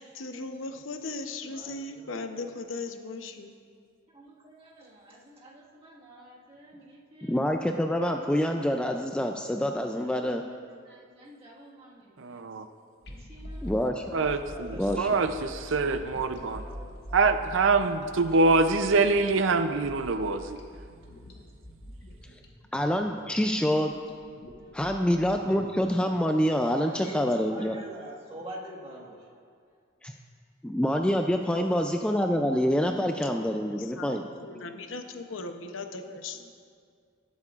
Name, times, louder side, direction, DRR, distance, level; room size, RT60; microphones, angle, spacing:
voice 1, 0.0-3.5 33.4-36.4, left 3 dB, 85° left, 6 dB, 0.8 m, -38 dB
voice 2, 1.5-2.2 4.1-7.4 10.8-12.4 13.1-13.7 14.4-15.9 16.2-17.2 24.6-24.7 26.8-29.2, right 1 dB, 30° right, -4 dB, 1.6 m, -47 dB
voice 3, 7.2-10.4 13.6-14.0 14.8-15.1 22.7-23.9 24.7-27.8 30.0-30.1 30.6-34.2, equal, 5° left, 4 dB, 0.3 m, -26 dB
voice 4, 12.2-12.6 14.1-16.6 17.1-20.6, right 3 dB, 80° right, 9 dB, 0.5 m, -25 dB
sound 1, 13.0-26.1, equal, 60° left, 1.3 m, -44 dB
19.0 x 8.2 x 2.4 m, 2.2 s
head